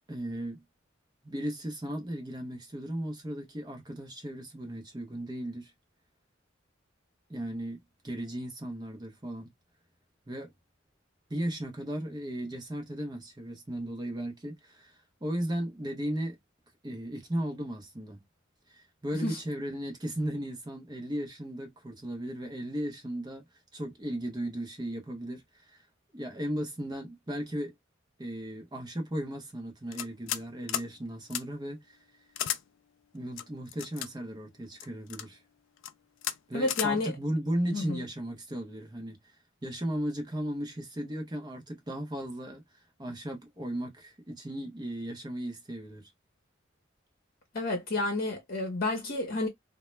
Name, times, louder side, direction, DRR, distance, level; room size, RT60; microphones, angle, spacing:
voice 1, 0.1-0.6 1.2-5.7 7.3-9.5 10.3-10.5 11.3-16.4 16.8-18.2 18.7-23.5 23.7-25.8 26.1-27.7 28.2-32.0 33.1-35.4 36.5-39.4 39.6-42.6 43.0-46.1, right 1 dB, 20° right, 0.7 m, -36 dB
sound 1, 29.9-30.4 30.7-30.9 31.3-31.4 32.3-32.6 33.4-34.1 34.8-35.3 35.8-35.9 36.2-36.4 36.7-36.9, left 11 dB, 75° left, 0.3 m, -33 dB
voice 2, 36.5-37.1 37.7-38.0 47.5-49.5, left 2 dB, 50° left, 0.8 m, -30 dB
2.2 x 2.1 x 3.1 m
head